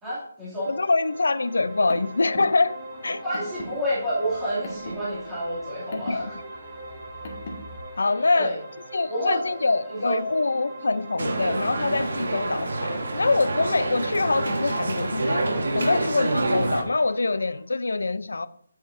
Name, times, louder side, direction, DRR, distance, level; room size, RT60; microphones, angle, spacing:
voice 1, 0.0-0.7 3.2-6.4 8.3-8.6 9.1-9.4 9.9-10.2, equal, 5° right, 2.6 m, -29 dB
sound 1, 0.6-17.6, right 1 dB, 30° right, 2.4 m, -41 dB
voice 2, 0.7-3.2 5.9-6.3 8.0-8.6 8.9-15.5 15.7-18.5, left 3 dB, 80° left, 0.5 m, -24 dB
Car, 1.6-7.8, left 1 dB, 30° left, 1.8 m, -41 dB
sound 2, 11.2-16.8, right 2 dB, 55° right, 1.4 m, -27 dB
11.0 x 7.7 x 2.6 m
hypercardioid pair, 175°, 0 cm